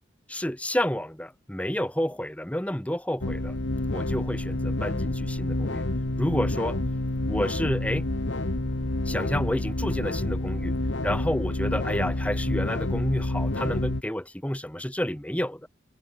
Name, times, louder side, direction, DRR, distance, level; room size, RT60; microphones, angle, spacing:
voice 1, 0.3-3.6 3.9-5.8 6.2-6.8 7.3-8.0 9.0-10.7 11.0-15.7, equal, 5° left, 1.3 m, -30 dB
sound 1, 3.2-14.0, left 1 dB, 85° left, 1.6 m, -28 dB
head